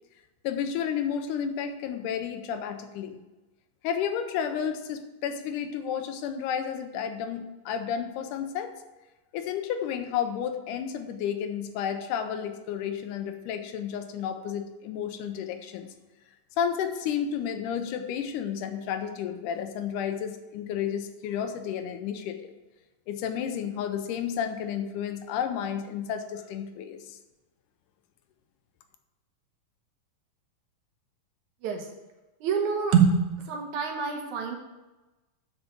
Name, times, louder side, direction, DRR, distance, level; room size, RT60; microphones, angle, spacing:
voice 1, 0.4-3.2 3.8-8.7 9.3-15.9 16.6-22.5 23.1-27.2, left 8 dB, 80° left, 8 dB, 2.2 m, -31 dB
voice 2, 32.4-33.2 33.5-34.6, right 6 dB, 70° right, 3 dB, 2.3 m, -25 dB
8.6 x 5.0 x 6.7 m, 1.1 s
omnidirectional pair, 3.7 m